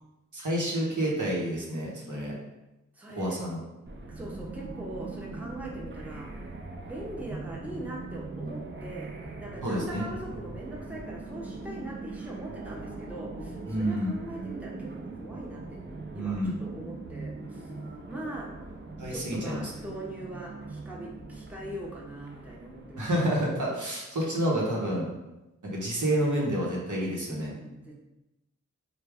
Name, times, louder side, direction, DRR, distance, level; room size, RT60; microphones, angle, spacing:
voice 1, 0.3-2.3 3.2-3.6 9.6-10.0 13.7-14.1 16.1-16.5 19.0-19.6 23.0-25.1 25.6-27.5, right 1 dB, 75° right, -3 dB, 0.9 m, -29 dB
voice 2, 2.9-3.4 4.1-6.4 6.8-9.1 9.4-17.8 18.1-18.5 19.1-23.4 27.5-28.0, right 1 dB, 5° right, -3 dB, 0.8 m, -41 dB
sound 1, 3.9-23.1, right 3 dB, 40° right, 0.5 m, -41 dB
3.4 x 2.2 x 3.4 m, 0.96 s
cardioid pair, 40°, 31 cm